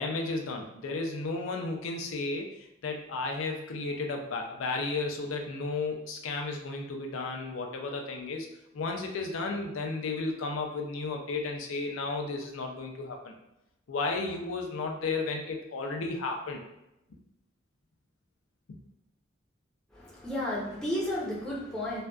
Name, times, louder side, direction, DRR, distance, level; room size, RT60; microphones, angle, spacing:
voice 1, 0.0-2.5 2.8-8.5 8.7-13.3 13.9-16.6 18.7-18.8, left 3 dB, 90° left, 2 dB, 0.4 m, -33 dB
voice 2, 19.9-22.0, left 1 dB, 5° left, -7 dB, 0.6 m, -33 dB
2.5 x 2.2 x 2.3 m, 0.89 s
head